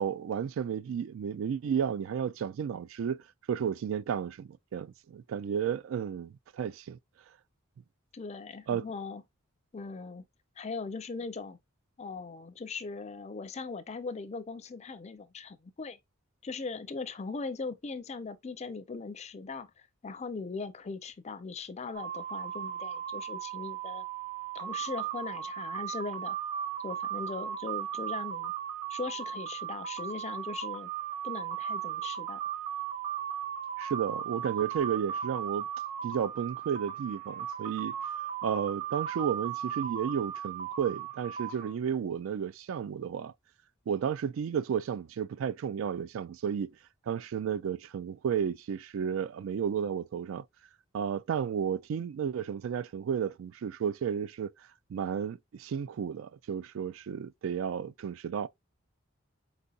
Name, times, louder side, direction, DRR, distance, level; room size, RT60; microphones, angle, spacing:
voice 1, 0.0-7.0 8.7-8.8 33.8-35.7 36.0-38.0 38.4-43.3 43.9-46.7 47.1-50.4 50.9-54.5 54.9-58.5, right 7 dB, 70° right, 0.3 m, -32 dB
voice 2, 8.1-9.2 9.7-10.2 10.6-11.6 12.0-16.0 16.4-19.7 20.0-24.0 24.5-26.4 26.8-28.5 28.9-30.9 31.2-32.4, left 4 dB, 30° left, 0.4 m, -39 dB
sound 1, 21.9-41.7, right 9 dB, 30° right, 0.9 m, -37 dB
4.4 x 4.0 x 2.3 m
head